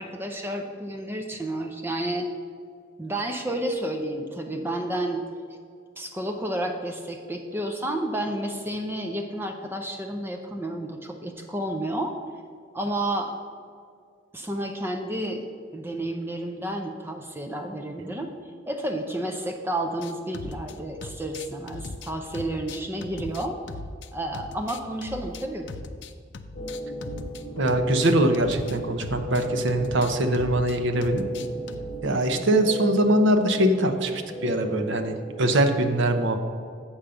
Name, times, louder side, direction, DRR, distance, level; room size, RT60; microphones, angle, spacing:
voice 1, 0.0-2.3 3.0-5.3 6.0-12.2 12.7-13.3 14.3-15.4 15.7-18.3 18.7-23.6 24.1-25.7 32.4-32.5, right 1 dB, 10° right, 3 dB, 0.5 m, -31 dB
sound 1, 20.0-20.7 21.0-24.1 24.3-27.4 27.7-32.0, left 3 dB, 60° left, 0.5 m, -39 dB
sound 2, 26.6-35.9, right 1 dB, 35° left, 1.3 m, -35 dB
voice 2, 27.6-31.2 32.0-36.4, right 1 dB, 70° right, 6 dB, 0.7 m, -23 dB
7.2 x 5.1 x 6.9 m, 2.2 s
head